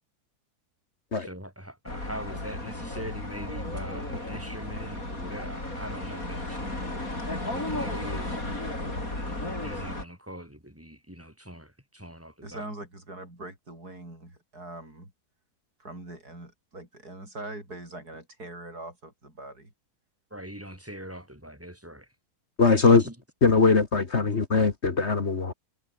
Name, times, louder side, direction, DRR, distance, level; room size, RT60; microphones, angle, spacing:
voice 1, 1.2-7.1 7.5-8.4 9.2-12.7 20.3-22.1 22.8-23.2 24.5-24.6, equal, 10° right, 7.4 m, -42 dB
sound 1, 1.9-10.0, left 2 dB, 60° left, 8.0 m, -34 dB
voice 2, 12.4-15.1 15.8-19.7, right 2 dB, 75° right, 8.3 m, -42 dB
voice 3, 22.6-23.0 23.4-25.5, left 4 dB, 45° left, 1.9 m, -21 dB
omnidirectional pair, 1.7 m